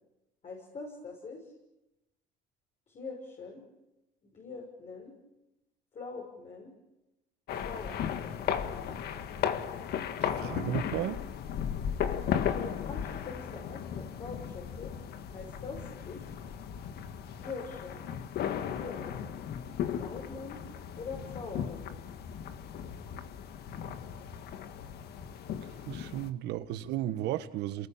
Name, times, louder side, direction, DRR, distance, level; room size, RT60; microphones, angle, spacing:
voice 1, 0.4-1.4 2.9-3.6 4.3-5.1 5.9-6.7 7.6-8.3 12.1-14.9 15.3-16.3 17.4-18.1 18.6-19.3 20.0-20.6 21.0-21.9, left 4 dB, 45° left, -1 dB, 6.4 m, -43 dB
sound 1, 7.5-26.3, left 8 dB, 70° left, 1.7 m, -36 dB
voice 2, 10.2-11.2 25.6-27.9, right 13 dB, 85° right, 12 dB, 1.4 m, -34 dB
28.0 x 19.5 x 8.9 m, 0.94 s
cardioid pair, 110°, 17 cm